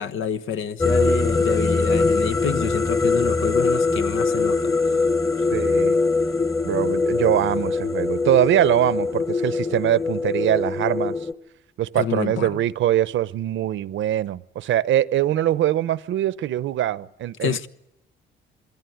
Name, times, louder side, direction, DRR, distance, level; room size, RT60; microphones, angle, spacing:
voice 1, 0.0-4.7 11.9-12.5 17.4-17.7, left 8 dB, 75° left, 1.2 m, -27 dB
sound 1, 0.8-11.3, left 3 dB, 15° left, 1.3 m, -22 dB
voice 2, 5.5-5.9 6.6-11.1 11.8-17.7, right 12 dB, 75° right, 0.9 m, -22 dB
27.5 x 21.0 x 9.4 m
cardioid pair, 90°, 20 cm